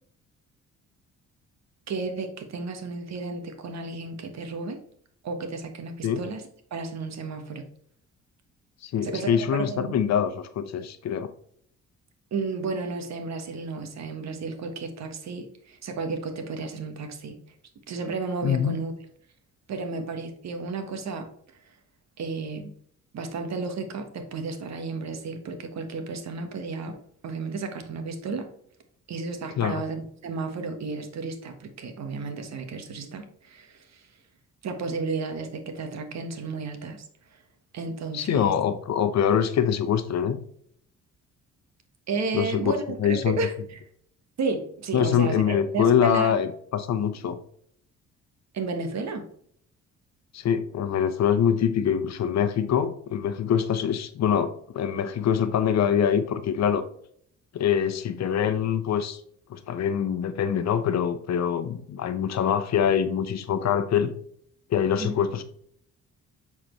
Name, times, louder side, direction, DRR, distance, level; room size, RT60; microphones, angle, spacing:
voice 1, 1.9-4.8 5.2-6.4 6.7-7.7 9.0-9.9 12.3-17.4 17.9-18.9 19.7-21.3 22.2-22.7 23.1-28.5 29.1-34.1 34.6-37.0 37.3-37.4 37.7-38.6 42.1-43.8 44.4-46.3 48.5-49.3 65.0-65.1, right 4 dB, 60° right, 7 dB, 1.4 m, -33 dB
voice 2, 8.8-11.3 18.4-18.8 29.6-29.8 38.1-40.4 42.3-43.4 44.9-47.4 50.3-56.8 57.5-59.2 59.5-64.1 64.7-65.4, left 8 dB, 60° left, 10 dB, 0.9 m, -24 dB
7.5 x 4.3 x 3.2 m, 0.64 s
cardioid pair, 90°, 30 cm